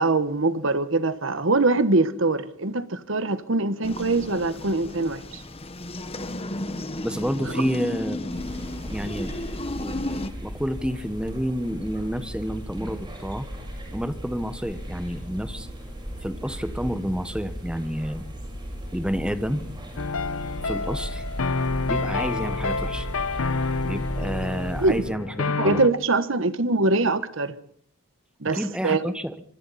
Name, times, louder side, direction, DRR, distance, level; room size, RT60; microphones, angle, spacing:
voice 1, 0.0-5.4 7.4-7.5 24.8-25.0 25.6-27.5 28.4-29.1, right 2 dB, 60° right, 1.4 m, -23 dB
sound 1, 3.8-10.3, left 1 dB, 30° left, 1.3 m, -33 dB
voice 2, 7.0-8.3 8.9-9.3 9.8-10.0 10.4-13.5 13.9-15.7 16.2-18.2 18.9-19.6 20.6-21.2 21.9-23.1 23.8-25.8 28.5-29.4, equal, 5° right, 1.2 m, -29 dB
sound 2, 8.3-25.0, equal, 20° right, 7.4 m, -36 dB
sound 3, 20.0-25.9, left 4 dB, 75° left, 0.9 m, -28 dB
26.0 x 24.5 x 4.2 m
head